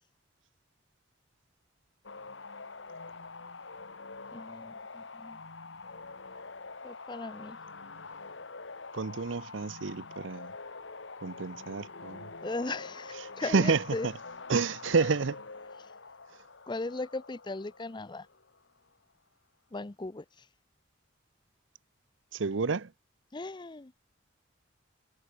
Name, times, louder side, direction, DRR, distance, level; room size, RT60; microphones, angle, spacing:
sound 1, 2.0-18.8, left 4 dB, 80° left, 2.1 m, -46 dB
voice 1, 4.3-5.4 6.8-7.6 12.4-14.1 15.0-15.1 16.7-18.3 19.7-20.2 23.3-23.9, left 2 dB, 25° left, 0.6 m, -37 dB
voice 2, 8.9-10.5 11.2-12.3 13.4-14.1 14.5-15.4 22.3-22.9, right 4 dB, 85° right, 0.7 m, -29 dB
head